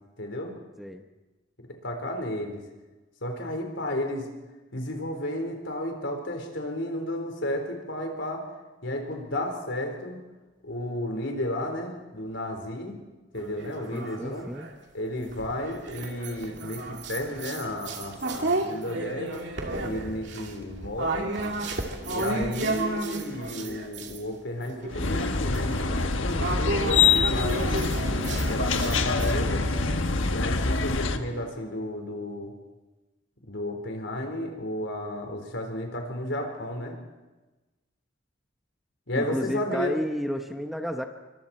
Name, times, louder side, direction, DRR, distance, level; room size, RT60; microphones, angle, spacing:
voice 1, 0.2-0.5 1.8-2.6 3.2-4.3 4.7-8.5 8.8-10.2 10.6-12.9 13.3-14.5 14.9-19.5 19.8-21.3 22.0-27.7 28.3-29.6 30.3-32.5 33.4-37.0 39.1-39.9, left 1 dB, 70° left, 3 dB, 4.3 m, -33 dB
sound 1, 13.4-14.7 15.3-24.2 24.6-29.3, right 2 dB, 60° right, 2.7 m, -33 dB
voice 2, 13.9-14.7 39.2-41.0, equal, ahead, 4 dB, 1.0 m, -31 dB
sound 2, 24.9-31.2, left 4 dB, 90° left, 1.4 m, -25 dB
sound 3, 27.9-31.9, right 1 dB, 35° right, 2.1 m, -43 dB
27.5 x 24.5 x 4.4 m, 1.2 s
head